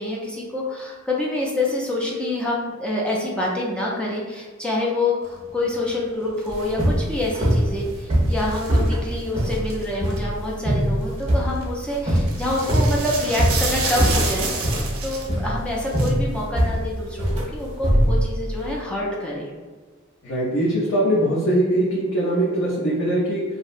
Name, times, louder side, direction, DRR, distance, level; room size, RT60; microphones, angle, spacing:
voice 1, 0.0-19.5, left 2 dB, 5° left, -4 dB, 0.4 m, -27 dB
sound 1, 5.3-10.2 10.8-11.8 12.1-16.1, right 4 dB, 85° right, 0.5 m, -30 dB
sound 2, 6.5-18.7, equal, 35° right, 0.7 m, -22 dB
voice 2, 20.2-23.4, right 1 dB, 65° left, -7 dB, 0.5 m, -21 dB
2.6 x 2.0 x 2.4 m, 1.4 s
head